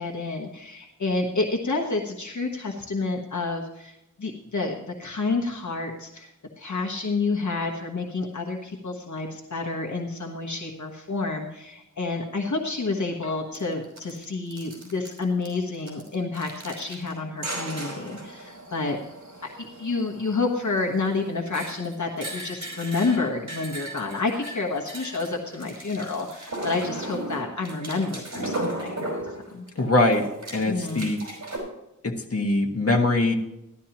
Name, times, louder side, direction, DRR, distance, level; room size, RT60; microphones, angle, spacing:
voice 1, 0.0-19.0 19.6-29.1 29.5-29.7 30.6-31.1, left 3 dB, 65° left, 0 dB, 1.4 m, -29 dB
sound 1, 12.8-12.9 13.2-13.6 13.8-14.2 14.5-15.5 15.7-17.1 17.4-29.8 30.1-31.6, right 2 dB, 60° right, 4.9 m, -37 dB
voice 2, 29.8-30.2 30.5-31.2 32.0-33.3, left 2 dB, 50° left, 1 dB, 1.6 m, -22 dB
14.0 x 12.0 x 3.0 m, 0.87 s
wide cardioid pair, 80°, 31 cm